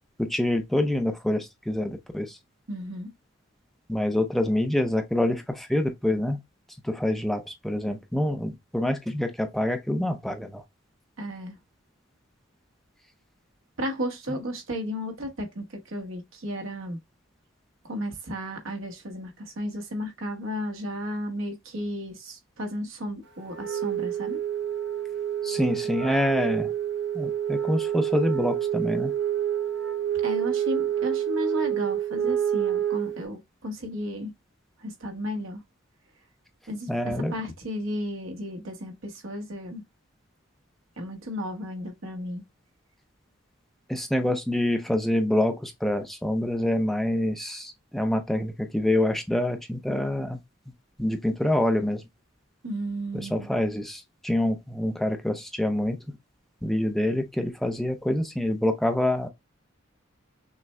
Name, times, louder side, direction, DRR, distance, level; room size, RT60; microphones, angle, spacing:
voice 1, 0.2-2.4 3.9-6.4 6.8-10.6 25.4-26.7 27.1-29.1 36.9-37.3 43.9-50.4 51.0-52.0 53.1-56.0 56.6-59.3, left 1 dB, ahead, 0.5 m, -26 dB
voice 2, 2.7-3.1 11.2-11.6 13.8-17.0 17.8-24.4 30.2-34.3 34.8-35.6 36.7-39.8 41.0-42.4 52.6-53.5, equal, 85° right, 1.1 m, -34 dB
Wind instrument woodwind instrument, 23.5-33.2, right 10 dB, 60° right, 0.9 m, -28 dB
6.0 x 2.1 x 3.2 m
head